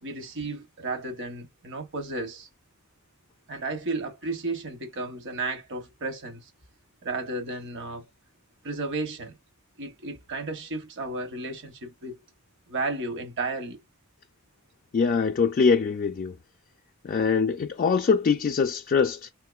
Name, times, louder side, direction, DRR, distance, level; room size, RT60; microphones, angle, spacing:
voice 1, 0.0-2.5 3.5-6.5 7.0-8.0 8.6-9.4 9.8-12.2 12.7-13.8, right 3 dB, 60° right, 0.9 m, -33 dB
voice 2, 14.9-16.4 17.0-19.3, left 5 dB, 40° left, 0.3 m, -23 dB
3.6 x 2.5 x 2.3 m
head